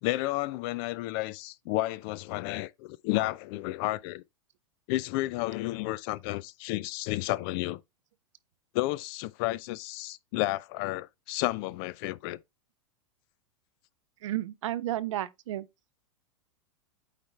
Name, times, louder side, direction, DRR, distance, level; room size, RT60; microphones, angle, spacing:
voice 1, 0.0-4.2 4.9-7.8 8.7-12.4, left 18 dB, 45° left, 0.4 m, -31 dB
voice 2, 14.2-15.7, right 13 dB, 65° right, 0.6 m, -32 dB
8.2 x 4.3 x 3.1 m
hypercardioid pair, 100°, 17 cm